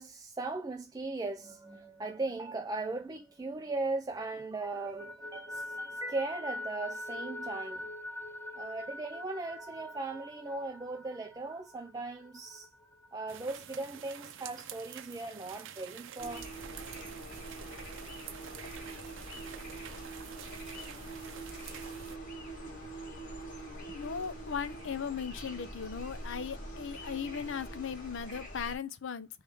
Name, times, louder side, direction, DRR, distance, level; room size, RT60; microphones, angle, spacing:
voice 1, 0.0-7.8 8.6-12.7 13.1-16.5 17.7-17.8, right 3 dB, 20° right, 0.4 m, -38 dB
sound 1, 1.2-4.1 4.4-13.9, left 1 dB, 10° left, 0.7 m, -45 dB
sound 2, 13.3-22.2, right 9 dB, 65° right, 0.6 m, -48 dB
sound 3, 16.2-28.8, right 1 dB, 40° left, 1.7 m, -44 dB
voice 2, 23.9-29.3, left 6 dB, 60° left, 0.6 m, -37 dB
3.5 x 3.2 x 4.4 m
head